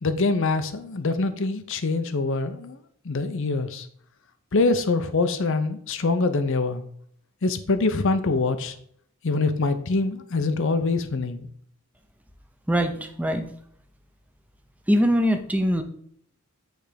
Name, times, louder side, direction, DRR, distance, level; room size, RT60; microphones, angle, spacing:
voice 1, 0.0-2.8 3.0-3.9 4.5-6.8 7.4-8.7 9.2-11.5, left 3 dB, 60° left, 10 dB, 0.6 m, -24 dB
voice 2, 12.7-13.5 14.9-15.8, equal, 5° right, 6 dB, 0.7 m, -22 dB
9.0 x 3.4 x 5.0 m, 0.64 s
head